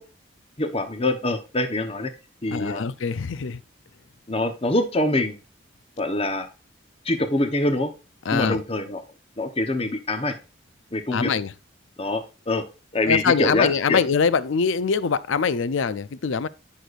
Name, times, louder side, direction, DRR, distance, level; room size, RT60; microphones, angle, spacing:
voice 1, 0.6-2.1 2.4-2.8 4.3-5.4 6.0-6.5 7.0-7.9 8.3-9.0 9.4-10.4 10.9-11.3 12.0-12.7 12.9-14.0, left 2 dB, 30° left, 0.9 m, -24 dB
voice 2, 2.5-3.6 8.3-8.6 11.1-11.5 13.1-16.5, left 5 dB, 75° left, 0.5 m, -23 dB
10.0 x 6.3 x 2.5 m
head